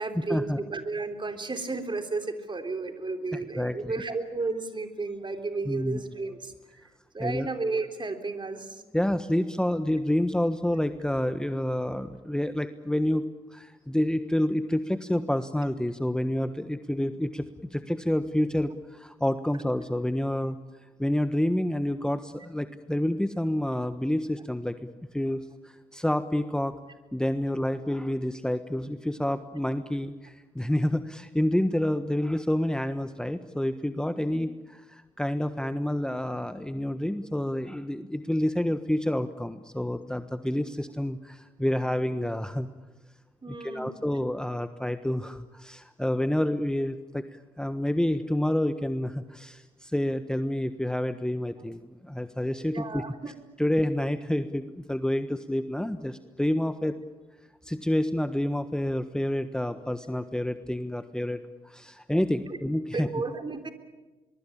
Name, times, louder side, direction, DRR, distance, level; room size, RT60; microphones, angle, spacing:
voice 1, 0.0-6.5 7.1-8.8 34.3-34.4 43.4-43.9 52.6-53.3 62.5-62.6 62.9-63.7, right 3 dB, 35° right, 7 dB, 3.7 m, -33 dB
voice 2, 3.3-3.9 5.7-6.0 7.2-7.5 8.9-17.5 17.7-20.6 21.0-24.8 25.1-26.7 27.1-42.7 43.6-47.2 47.6-53.0 53.6-56.9 57.6-61.4 61.6-63.1, left 1 dB, 5° left, 10 dB, 1.3 m, -28 dB
23.5 x 23.0 x 8.8 m, 1.1 s
hypercardioid pair, 50°, 15 cm